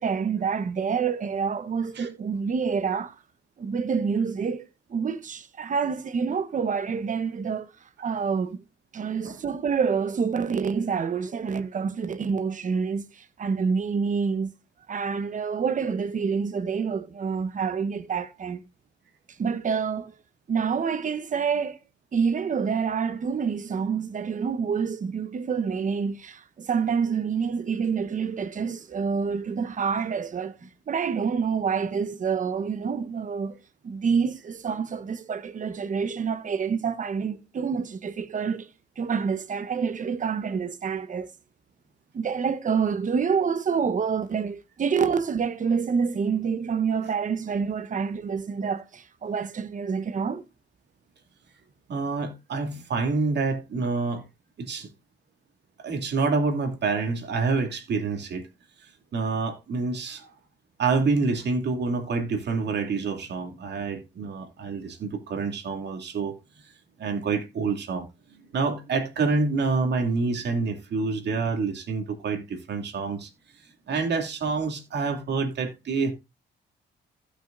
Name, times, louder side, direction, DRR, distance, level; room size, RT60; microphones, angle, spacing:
voice 1, 0.0-3.1 3.6-4.6 4.9-7.7 8.0-8.6 8.9-14.5 14.9-18.6 19.4-20.1 20.5-21.8 22.1-30.6 30.9-33.6 33.8-38.7 39.0-41.3 42.1-50.4, right 6 dB, 40° right, 1.1 m, -27 dB
voice 2, 51.9-54.2 54.6-54.9 55.8-58.4 58.8-60.3 60.8-66.3 67.0-68.1 68.5-73.3 73.9-76.1, right 4 dB, 60° right, 2.5 m, -27 dB
16.0 x 6.4 x 2.5 m
cardioid pair, 90°, 20 cm